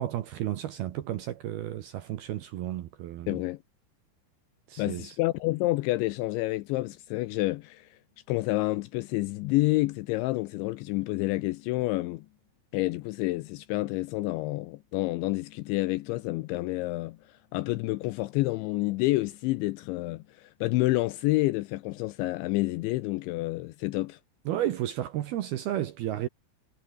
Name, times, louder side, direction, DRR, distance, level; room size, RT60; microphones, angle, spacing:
voice 1, 0.0-3.4 4.7-5.2 24.5-26.3, right 12 dB, 70° right, 2.5 m, -32 dB
voice 2, 3.3-3.6 4.8-8.0 8.3-12.3 12.7-17.2 17.5-24.2, left 19 dB, 80° left, 2.7 m, -29 dB
omnidirectional pair, 5.9 m